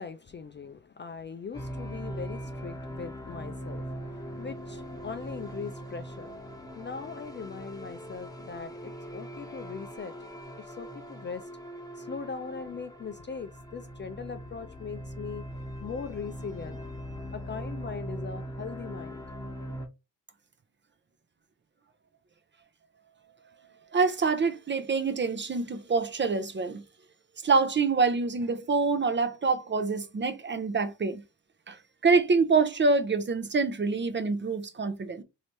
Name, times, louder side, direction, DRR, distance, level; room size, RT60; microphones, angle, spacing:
voice 1, 0.0-10.3 10.6-11.5 11.9-15.5 15.8-16.8 17.3-19.2, left 5 dB, 30° left, 0.4 m, -40 dB
sound 1, 1.5-19.9, equal, 10° left, 1.2 m, -40 dB
voice 2, 23.9-26.8 27.4-31.2 31.7-35.2, right 4 dB, 30° right, 0.6 m, -26 dB
3.1 x 2.8 x 2.9 m
supercardioid pair, 70°, 40 cm